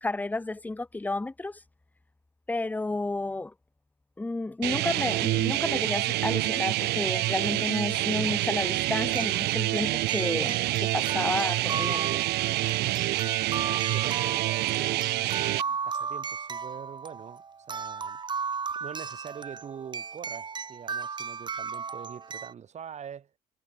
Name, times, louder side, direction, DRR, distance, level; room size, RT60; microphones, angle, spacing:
voice 1, 0.0-1.6 2.5-3.5 4.2-12.2, left 2 dB, 10° left, 0.7 m, -31 dB
sound 1, 4.6-15.6, right 17 dB, 75° right, 0.8 m, -27 dB
sound 2, 7.7-7.8 9.1-22.5, right 5 dB, 25° right, 0.9 m, -36 dB
voice 2, 13.9-18.2 18.8-23.3, right 8 dB, 45° right, 2.5 m, -44 dB
cardioid pair, 110°, 17 cm